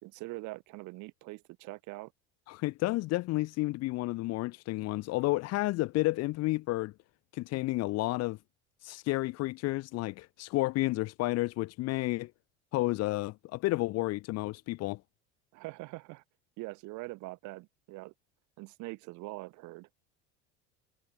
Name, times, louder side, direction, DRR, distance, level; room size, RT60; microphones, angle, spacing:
voice 1, 0.0-2.1 15.5-16.2 16.6-18.1 18.6-19.9, right 22 dB, 65° right, 3.3 m, -43 dB
voice 2, 2.5-6.9 7.3-8.4 8.8-12.3 12.7-15.0, left 19 dB, 55° left, 0.7 m, -31 dB
supercardioid pair, 90°, 32 cm